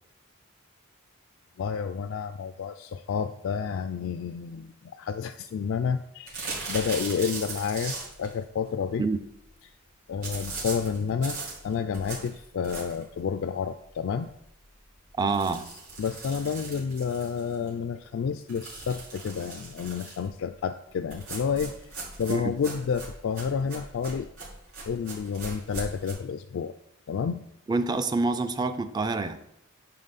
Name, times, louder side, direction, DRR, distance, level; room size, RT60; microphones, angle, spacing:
voice 1, 1.6-9.0 10.1-11.4 11.6-14.3 16.0-21.8 22.2-24.3 24.8-26.7 27.1-27.4, left 6 dB, 60° left, 9 dB, 0.3 m, -30 dB
sound 1, 6.3-8.3 10.2-13.1 13.6-13.7 14.0-14.1 14.4-14.5 15.2-17.7 18.5-20.3 21.1-26.1, right 3 dB, 90° right, 3.3 m, -39 dB
voice 2, 15.2-15.7 22.3-22.5 27.7-29.4, right 3 dB, 20° right, 10 dB, 0.4 m, -27 dB
9.9 x 4.4 x 4.1 m, 0.78 s
head